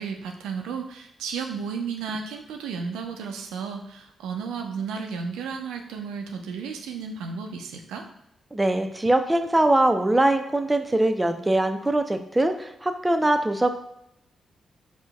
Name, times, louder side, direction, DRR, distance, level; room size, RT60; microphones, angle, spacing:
voice 1, 0.0-8.1, right 5 dB, 85° right, 4 dB, 0.4 m, -33 dB
voice 2, 8.5-13.7, right 1 dB, 20° right, 7 dB, 0.4 m, -22 dB
5.1 x 2.1 x 2.3 m, 0.81 s
hypercardioid pair, 45°, 0 cm